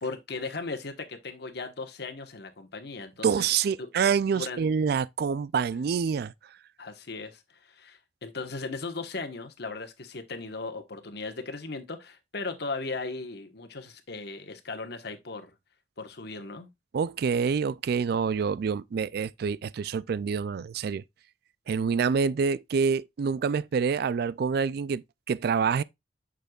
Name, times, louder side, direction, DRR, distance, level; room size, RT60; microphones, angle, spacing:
voice 1, 0.0-3.4 3.8-3.9 4.3-4.6 6.8-15.5 16.0-16.7, left 3 dB, 65° left, 1.3 m, -37 dB
voice 2, 3.2-6.3 16.9-21.0 21.7-25.8, right 6 dB, 60° right, 0.3 m, -27 dB
7.9 x 6.6 x 2.4 m
head